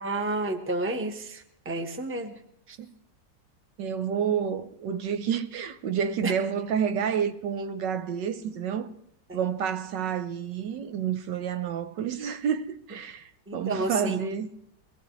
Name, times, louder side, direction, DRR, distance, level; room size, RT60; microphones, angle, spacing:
voice 1, 0.0-2.3 6.2-6.3 9.3-9.4 13.5-14.2, right 2 dB, 10° right, 0.9 m, -30 dB
voice 2, 3.8-8.9 9.3-14.6, right 8 dB, 70° right, 1.4 m, -29 dB
23.5 x 18.0 x 3.2 m
omnidirectional pair, 2.0 m